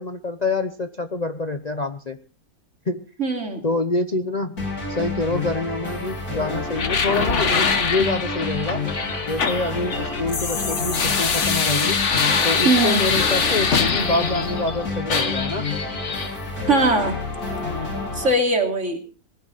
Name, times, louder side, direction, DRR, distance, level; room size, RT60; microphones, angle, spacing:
voice 1, 0.0-2.2 2.9-3.1 3.6-8.9 9.3-12.0 12.4-15.7, left 2 dB, 35° left, 8 dB, 0.8 m, -26 dB
voice 2, 3.2-3.6 12.6-13.1 16.7-17.2 18.1-19.0, right 2 dB, 50° right, 3 dB, 3.2 m, -20 dB
sound 1, 4.6-18.3, left 3 dB, 85° left, 5.6 m, -29 dB
sound 2, 6.7-14.7 15.1-16.3, left 5 dB, 55° left, 1.6 m, -24 dB
Alarm, 7.0-13.9, right 4 dB, 35° right, 5.4 m, -44 dB
20.5 x 14.5 x 4.1 m, 0.36 s
omnidirectional pair, 1.6 m